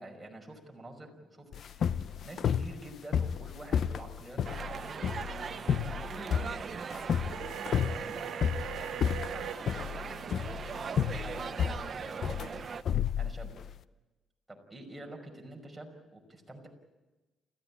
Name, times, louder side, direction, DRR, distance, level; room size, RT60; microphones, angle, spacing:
voice 1, 0.0-2.0 2.2-7.1 7.8-8.5 8.7-10.9 11.2-12.4 13.2-13.5 14.5-16.7, right 1 dB, 5° right, 1 dB, 5.4 m, -48 dB
sound 1, 1.5-13.8, left 8 dB, 60° left, 0.7 m, -32 dB
sound 2, 4.4-12.8, right 6 dB, 40° right, 0.9 m, -40 dB
sound 3, 7.3-9.6, right 10 dB, 90° right, 1.7 m, -40 dB
29.0 x 15.0 x 8.6 m, 1.1 s
cardioid pair, 110°, 0 cm